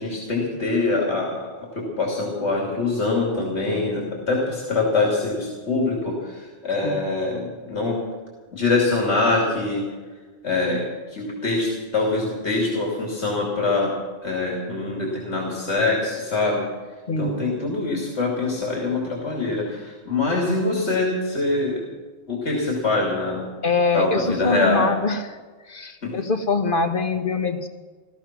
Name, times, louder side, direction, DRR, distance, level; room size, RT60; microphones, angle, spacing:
voice 1, 0.0-1.5 1.7-8.0 8.5-9.8 10.4-13.9 14.2-16.6 17.2-21.8 22.3-23.4 23.9-24.9 26.0-26.1, left 3 dB, 80° left, -2 dB, 3.1 m, -24 dB
voice 2, 17.1-17.5 23.6-25.4 25.7-27.7, left 3 dB, 50° left, 7 dB, 1.4 m, -23 dB
16.0 x 14.0 x 6.0 m, 1.4 s
omnidirectional pair, 1.1 m